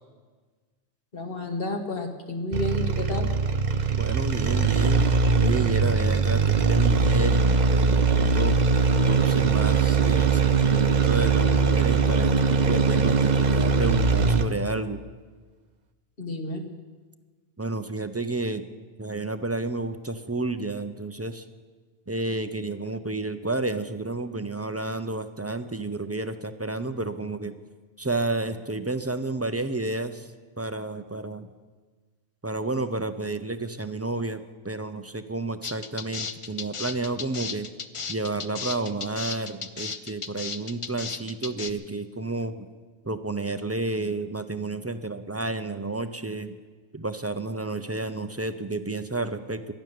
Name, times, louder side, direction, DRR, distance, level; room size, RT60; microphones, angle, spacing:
voice 1, 1.1-3.3 16.2-16.6, left 1 dB, 60° left, 4 dB, 1.9 m, -31 dB
sound 1, 2.5-14.6, right 5 dB, 45° right, 0.8 m, -21 dB
voice 2, 3.9-5.1 5.4-8.6 9.1-15.0 17.6-18.7 19.0-21.4 22.1-27.5 28.0-30.3 30.6-31.5 32.4-37.7 38.1-42.6 43.0-46.6 46.9-49.7, right 2 dB, 20° right, 10 dB, 0.5 m, -31 dB
sound 2, 35.6-41.7, left 5 dB, 35° left, 0.6 m, -34 dB
12.0 x 12.0 x 9.3 m, 1.4 s
omnidirectional pair, 1.1 m